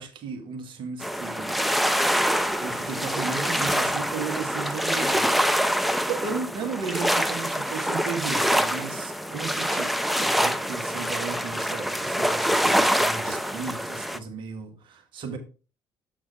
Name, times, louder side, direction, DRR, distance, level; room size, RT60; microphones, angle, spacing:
voice 1, 0.0-1.6 2.6-15.4, right 5 dB, 50° right, 1.4 m, -35 dB
sound 1, 1.0-14.2, equal, ahead, 0.6 m, -25 dB
7.8 x 4.3 x 4.5 m
figure-of-eight pair, 50°, 11 cm